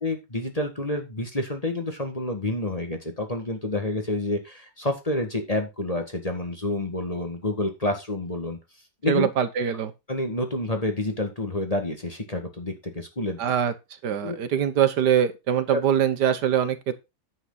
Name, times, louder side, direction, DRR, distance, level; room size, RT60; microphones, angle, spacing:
voice 1, 0.0-8.6 9.0-9.3 10.1-13.4 14.2-14.4 15.7-15.8, left 2 dB, 20° left, 1.7 m, -28 dB
voice 2, 9.1-9.9 13.4-13.7 14.0-16.9, right 9 dB, 70° right, 1.6 m, -23 dB
9.8 x 8.0 x 3.9 m
omnidirectional pair, 1.9 m